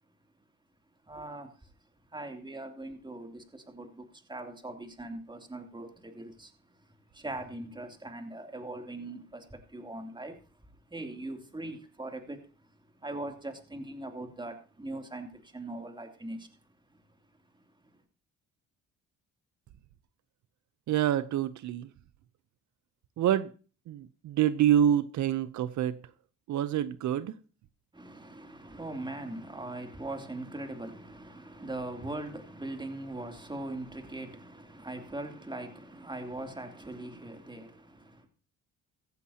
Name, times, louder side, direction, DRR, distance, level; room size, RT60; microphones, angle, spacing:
voice 1, 1.1-1.7 2.1-6.5 7.1-10.4 10.9-12.5 13.0-16.5 16.9-17.0 27.9-38.3, right 2 dB, 15° right, 3.0 m, -41 dB
voice 2, 20.9-21.9 23.2-23.5 23.9-26.0 26.5-27.3, right 10 dB, 75° right, 0.8 m, -27 dB
15.5 x 15.0 x 2.9 m
cardioid pair, 90°, 30 cm